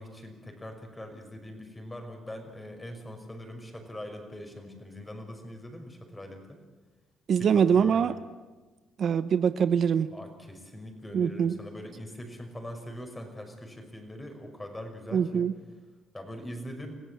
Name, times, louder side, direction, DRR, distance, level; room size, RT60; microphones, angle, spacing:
voice 1, 0.0-6.6 7.4-8.2 10.1-15.5 16.1-17.0, left 1 dB, 15° left, 5 dB, 5.6 m, -42 dB
voice 2, 7.3-8.1 9.0-10.1 11.1-11.6 15.1-15.5, right 7 dB, 60° right, 12 dB, 0.9 m, -23 dB
26.0 x 16.0 x 8.6 m, 1.3 s
cardioid pair, 90°, 0 cm